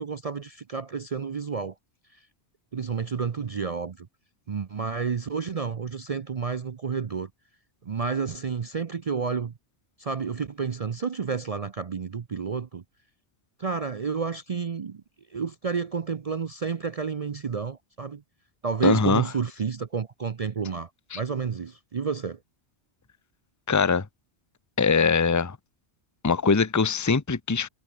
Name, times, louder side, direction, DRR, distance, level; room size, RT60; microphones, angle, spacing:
voice 1, 0.0-1.7 2.7-4.1 4.5-7.3 7.8-9.5 10.0-12.8 13.6-15.0 15.3-18.2 18.6-22.4, right 5 dB, 40° right, 0.6 m, -30 dB
voice 2, 18.8-19.2 21.1-21.2 23.7-24.0 24.8-25.6 26.2-27.7, left 5 dB, 15° left, 0.8 m, -22 dB
omnidirectional pair, 1.2 m